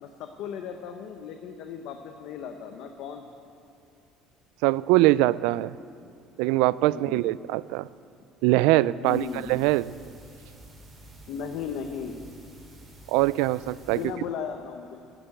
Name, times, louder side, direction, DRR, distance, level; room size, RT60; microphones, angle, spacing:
voice 1, 0.0-3.2 6.9-7.3 9.0-9.5 11.3-12.2 13.9-15.0, left 7 dB, 60° left, 5 dB, 0.8 m, -36 dB
voice 2, 4.6-5.8 6.4-7.9 8.4-9.9 13.1-14.0, right 18 dB, 90° right, 19 dB, 0.3 m, -22 dB
sound 1, 9.0-14.1, right 1 dB, 20° right, 4.0 m, -50 dB
12.5 x 11.0 x 7.8 m, 2.4 s
cardioid pair, 175°, 0 cm